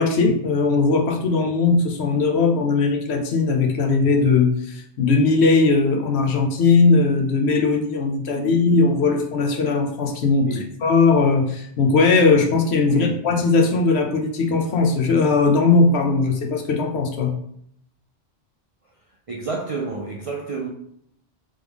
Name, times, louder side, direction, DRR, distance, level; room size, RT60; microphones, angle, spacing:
voice 1, 0.0-17.3, left 4 dB, 70° left, 0.9 m, -19 dB
voice 2, 10.4-10.7 12.9-13.2 19.3-20.7, right 3 dB, 55° right, 0.3 m, -29 dB
3.6 x 3.1 x 3.5 m
omnidirectional pair, 1.2 m